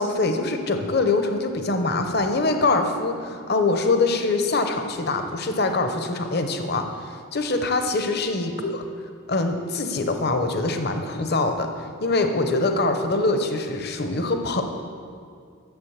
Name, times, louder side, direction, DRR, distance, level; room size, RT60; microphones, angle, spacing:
voice 1, 0.0-8.8 9.3-11.7 12.0-14.6, left 3 dB, 50° left, 6 dB, 0.8 m, -24 dB
11.5 x 7.5 x 7.3 m, 2.3 s
head